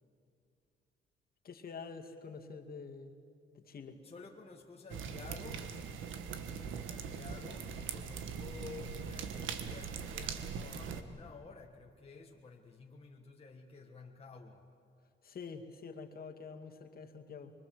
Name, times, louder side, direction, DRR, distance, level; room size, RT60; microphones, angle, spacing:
voice 1, 1.4-3.1 3.5-4.0 15.2-17.5, left 5 dB, 50° left, 4 dB, 2.2 m, -47 dB
voice 2, 3.9-5.7 6.8-14.7, left 5 dB, 30° left, 1 dB, 1.6 m, -52 dB
sound 1, 4.9-11.0, right 6 dB, 80° right, 1.6 m, -41 dB
24.5 x 23.0 x 7.7 m, 2.4 s
cardioid pair, 90°, 20 cm